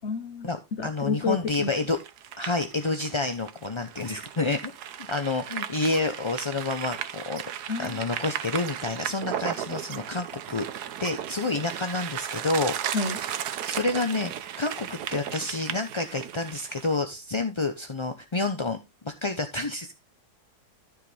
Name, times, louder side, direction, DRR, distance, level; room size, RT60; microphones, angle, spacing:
voice 1, 0.0-1.7 7.7-8.0 12.9-13.2, left 4 dB, 50° left, 1.3 m, -30 dB
voice 2, 0.8-2.0 2.4-4.7 5.1-7.4 7.8-10.7 11.0-13.1 13.6-18.8 19.0-19.9, left 3 dB, 30° left, 0.5 m, -29 dB
sound 1, 1.5-17.0, right 10 dB, 75° right, 1.3 m, -35 dB
13.0 x 6.5 x 3.3 m
omnidirectional pair, 1.7 m